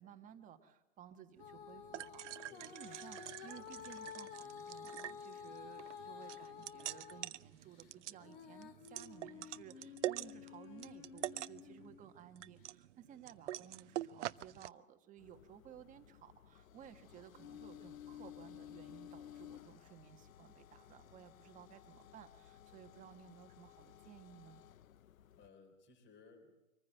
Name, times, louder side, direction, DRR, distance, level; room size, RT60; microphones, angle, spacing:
voice 1, 0.0-24.6, right 9 dB, 20° right, 7 dB, 1.5 m, -57 dB
Female singing, 1.4-7.3 7.7-12.0 12.6-12.7, left 8 dB, 45° left, 2.1 m, -52 dB
sound 1, 1.4-14.7, right 14 dB, 60° right, 0.7 m, -46 dB
sound 2, 15.2-25.5, left 10 dB, 90° left, 0.8 m, -56 dB
voice 2, 25.0-26.5, left 4 dB, 30° left, 4 dB, 4.1 m, -62 dB
24.5 x 15.0 x 7.9 m, 1.0 s
hypercardioid pair, 145°, 40 cm